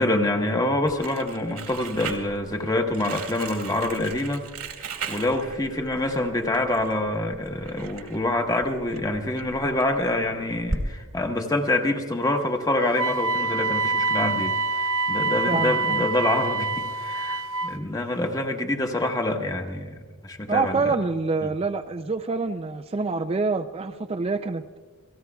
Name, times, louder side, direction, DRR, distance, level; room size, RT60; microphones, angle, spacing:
voice 1, 0.0-4.5 5.1-19.9 20.2-20.9 21.4-21.5, left 1 dB, 15° left, 3 dB, 1.2 m, -26 dB
Crumpling crinkling, 0.8-10.8, right 3 dB, 90° right, 2.2 m, -38 dB
Wind instrument woodwind instrument, 12.9-17.8, right 3 dB, 65° right, 0.7 m, -26 dB
voice 2, 15.5-16.0 20.5-24.8, right 3 dB, 25° right, 5 dB, 0.4 m, -26 dB
28.5 x 18.0 x 2.3 m, 1.5 s
head